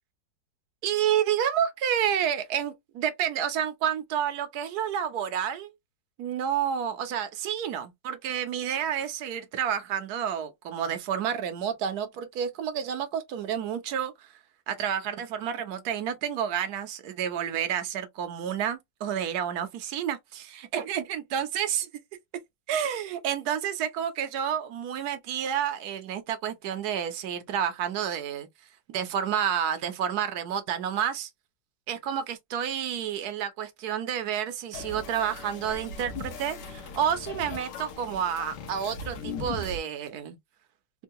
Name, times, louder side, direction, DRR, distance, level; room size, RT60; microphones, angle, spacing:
voice 1, 0.8-5.7 6.2-14.3 14.7-21.9 22.7-28.5 28.9-31.3 31.9-40.4, right 9 dB, 65° right, 1.1 m, -30 dB
sound 1, 34.7-39.8, left 3 dB, 70° left, 1.3 m, -39 dB
3.6 x 2.2 x 2.7 m
omnidirectional pair, 2.1 m